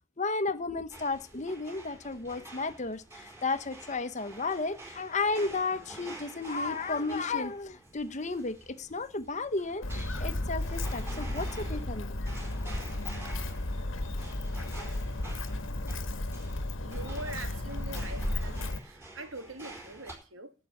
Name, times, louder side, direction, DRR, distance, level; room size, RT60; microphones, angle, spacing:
voice 1, 0.2-12.2, left 3 dB, 35° left, 1.0 m, -33 dB
sound 1, 0.9-20.1, right 1 dB, 10° right, 4.8 m, -46 dB
Walk footsteps, 9.8-18.8, left 1 dB, 85° left, 1.3 m, -34 dB
voice 2, 16.8-20.5, right 2 dB, 90° right, 2.0 m, -43 dB
11.5 x 8.3 x 9.0 m
head